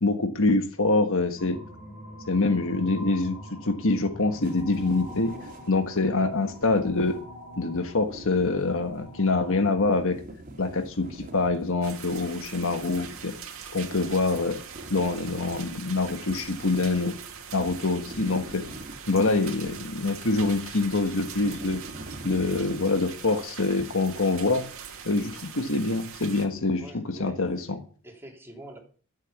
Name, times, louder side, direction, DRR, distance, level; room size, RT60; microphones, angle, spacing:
voice 1, 0.0-1.6 2.3-5.3 5.7-7.2 7.6-10.2 10.6-13.3 13.7-14.6 14.9-17.1 17.5-18.6 19.1-21.8 22.2-24.6 25.0-27.8, left 3 dB, 65° left, 7 dB, 1.5 m, -25 dB
sound 1, 1.4-9.6, left 1 dB, 35° left, 6.9 m, -44 dB
sound 2, 4.4-22.8, right 1 dB, 40° right, 2.9 m, -46 dB
sound 3, 11.8-26.5, right 7 dB, 65° right, 2.4 m, -42 dB
voice 2, 26.8-28.8, right 1 dB, 10° right, 0 dB, 3.5 m, -46 dB
13.0 x 7.9 x 7.2 m, 0.42 s
head